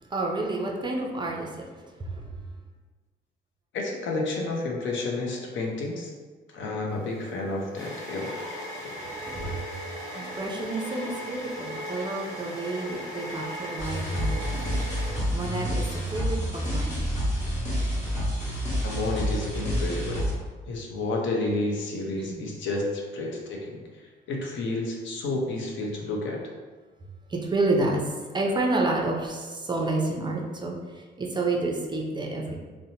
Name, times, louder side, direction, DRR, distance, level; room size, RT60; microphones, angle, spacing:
voice 1, 0.1-1.7 2.0-2.2 9.2-9.5 10.2-14.7 15.0-17.1 22.2-22.4 27.3-28.0 28.3-30.8 31.2-32.6, right 2 dB, 25° right, -1 dB, 0.4 m, -29 dB
voice 2, 3.7-6.1 6.5-8.3 9.3-9.5 18.8-20.2 20.7-23.8 24.3-26.4, left 2 dB, 75° left, -1 dB, 0.6 m, -30 dB
sound 1, 6.9-15.6, equal, 15° left, 1.0 m, -37 dB
sound 2, 13.8-20.3, equal, 35° left, 1.2 m, -28 dB
2.8 x 2.1 x 2.7 m, 1.4 s
cardioid pair, 90°, 20 cm